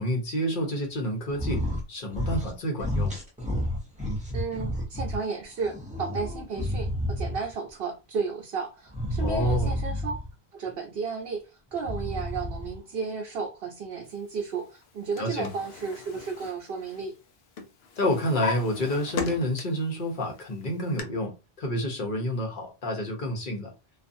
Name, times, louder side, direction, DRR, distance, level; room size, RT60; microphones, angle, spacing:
voice 1, 0.0-1.6 1.9-3.1 9.2-9.8 15.2-15.5 18.0-21.3 21.6-23.7, equal, 55° left, 1.0 m, -29 dB
sound 1, 1.3-1.8 2.1-2.5 2.8-5.2 5.6-7.5 8.9-10.3 11.7-12.8, equal, 10° right, 0.6 m, -30 dB
voice 2, 4.3-10.1 10.5-17.1, right 5 dB, 75° right, 0.8 m, -33 dB
Drawer open or close, 14.8-17.3 17.6-19.9 20.3-21.0, left 5 dB, 80° left, 0.8 m, -37 dB
2.4 x 2.4 x 2.6 m
omnidirectional pair, 1.0 m